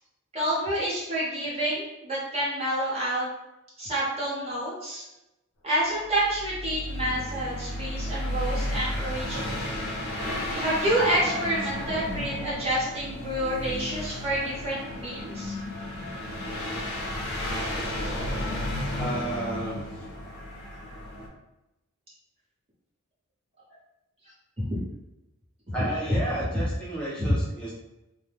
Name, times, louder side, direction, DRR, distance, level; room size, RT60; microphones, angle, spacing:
voice 1, 0.3-3.3 3.8-5.0 5.6-9.6 10.5-15.5 24.6-24.8 25.8-26.2 27.2-27.4, right 1 dB, 30° right, -8 dB, 0.9 m, -28 dB
sound 1, 6.1-21.3, left 1 dB, 65° left, 0.7 m, -33 dB
voice 2, 18.9-19.8 25.7-27.7, right 1 dB, 5° left, -9 dB, 0.8 m, -32 dB
2.1 x 2.1 x 3.3 m, 0.94 s
head